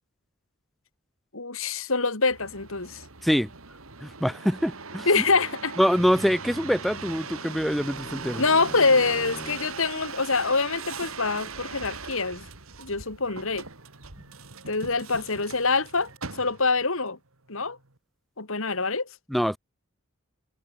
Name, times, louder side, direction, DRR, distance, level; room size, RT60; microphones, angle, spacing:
voice 1, 1.3-3.0 5.1-5.7 8.4-12.5 12.8-13.7 14.7-17.2 17.5-17.8 18.4-19.1, left 4 dB, 70° left, 3.1 m, -25 dB
sound 1, 2.3-16.9 17.4-18.0, right 5 dB, 70° right, 2.9 m, -40 dB
voice 2, 4.0-5.2 5.8-8.4 19.3-19.6, equal, ahead, 0.6 m, -24 dB
Bowed string instrument, 6.0-9.8, left 1 dB, 35° left, 4.6 m, -44 dB
head